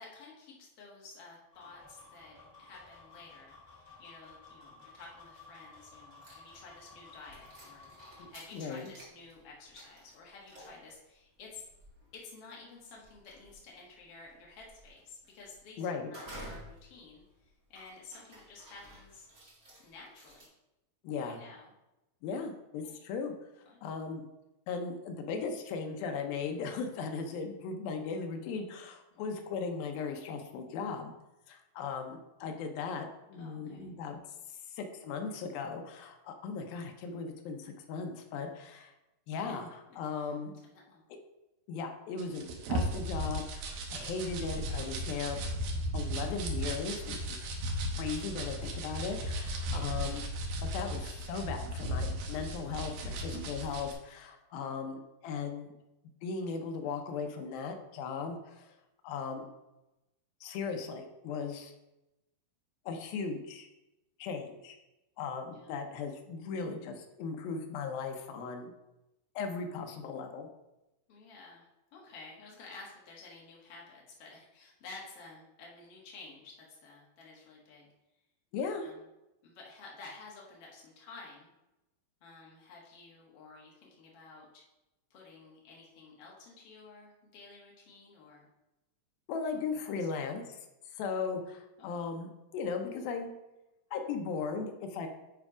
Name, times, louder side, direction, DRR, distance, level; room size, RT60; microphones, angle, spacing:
voice 1, 0.0-11.6 12.1-19.3 19.8-20.5 21.2-21.7 22.8-22.9 23.7-23.8 29.1-29.2 33.4-33.9 40.1-40.3 40.6-41.1 49.8-50.2 65.5-65.7 71.1-77.9 78.8-79.0 79.4-81.5 82.2-84.6 85.1-88.5 89.5-89.9 91.8-92.1, left 3 dB, 50° left, -3 dB, 2.2 m, -52 dB
sound 1, 1.5-8.3, left 3 dB, 15° right, 1.5 m, -55 dB
sound 2, 6.2-6.8 7.2-20.5, equal, 30° right, 1.7 m, -53 dB
voice 2, 8.2-8.9 15.8-16.1 21.0-21.4 22.2-23.3 23.8-24.3 24.7-31.1 31.5-34.2 34.7-38.9 39.3-39.7 40.0-40.5 41.7-45.4 45.9-50.2 50.7-55.7 56.2-58.7 59.0-59.5 60.4-61.7 62.9-63.7 64.2-64.8 65.2-68.7 69.4-70.5 78.5-78.8 89.3-90.6 91.0-93.3 93.9-95.1, left 5 dB, 80° left, 4 dB, 2.6 m, -37 dB
sound 3, 42.2-53.9, right 1 dB, 80° right, 2.8 m, -36 dB
9.5 x 3.6 x 4.9 m, 0.96 s
omnidirectional pair, 4.2 m